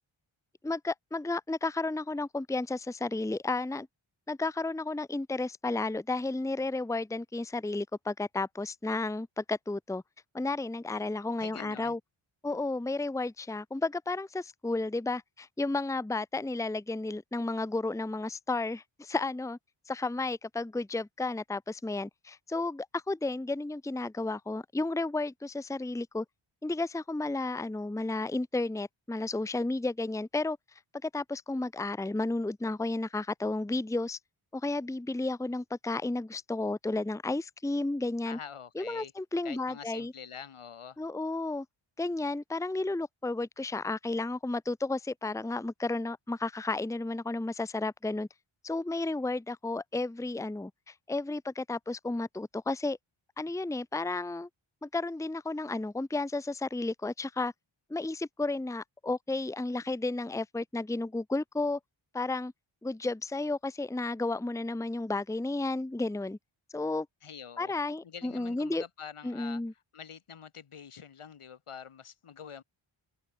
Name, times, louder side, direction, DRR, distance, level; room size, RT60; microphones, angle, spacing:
voice 1, 0.6-3.9 4.3-10.0 10.3-12.0 12.4-19.6 19.9-26.2 26.6-30.6 31.0-34.2 34.5-38.4 38.8-40.1 41.0-41.7 42.0-48.3 48.6-53.0 53.4-54.5 54.8-57.5 57.9-61.8 62.1-62.5 62.8-66.4 66.7-67.1 67.6-68.8 69.2-69.7, left 2 dB, 5° left, 0.8 m, -32 dB
voice 2, 11.4-12.0 38.2-39.1 39.4-41.0 67.2-67.7 68.0-69.6 69.9-72.6, left 7 dB, 85° left, 4.0 m, -46 dB
open air
wide cardioid pair, 160°, 50 cm